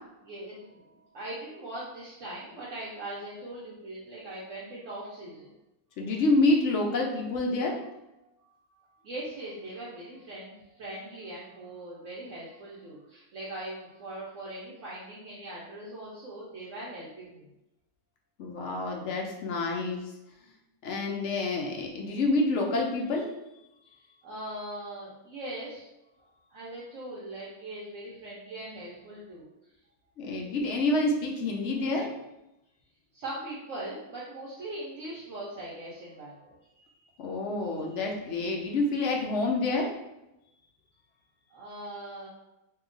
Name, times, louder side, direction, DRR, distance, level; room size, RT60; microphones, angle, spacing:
voice 1, 0.2-5.5 8.2-17.5 23.8-25.9 26.5-29.5 33.1-36.6 41.5-42.3, right 1 dB, 60° right, -7 dB, 1.0 m, -41 dB
voice 2, 6.0-7.8 18.4-20.0 20.8-23.3 30.2-32.1 37.2-39.9, left 2 dB, 65° left, 0 dB, 0.7 m, -27 dB
2.8 x 2.3 x 3.7 m, 0.91 s
omnidirectional pair, 1.6 m